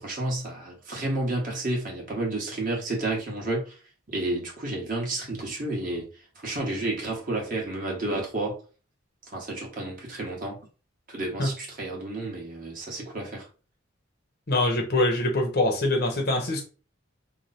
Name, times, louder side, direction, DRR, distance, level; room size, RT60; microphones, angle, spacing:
voice 1, 0.0-3.7 4.1-6.1 6.4-8.6 9.3-10.6 11.1-13.5, right 2 dB, 40° right, 1.2 m, -31 dB
voice 2, 14.5-16.6, left 1 dB, 50° left, 0.8 m, -24 dB
3.1 x 2.1 x 4.1 m
head